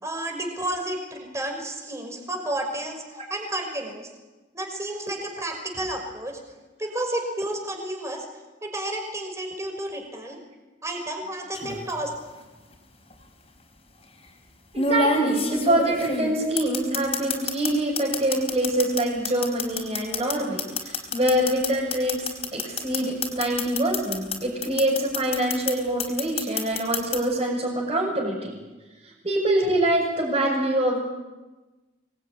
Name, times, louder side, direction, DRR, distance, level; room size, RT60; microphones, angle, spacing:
voice 1, 0.0-3.0 3.3-4.1 4.5-6.4 6.8-8.3 8.6-10.4 10.8-12.1, right 1 dB, 15° right, 3 dB, 5.7 m, -31 dB
sound 1, 11.5-11.9 13.1-13.2 14.7-17.7 18.0-24.4 24.6-25.7 26.0-27.2, left 3 dB, 35° left, 4.7 m, -26 dB
voice 2, 14.7-28.5 29.0-31.0, right 1 dB, 30° right, -6 dB, 6.7 m, -25 dB
25.5 x 21.0 x 9.9 m, 1.2 s
head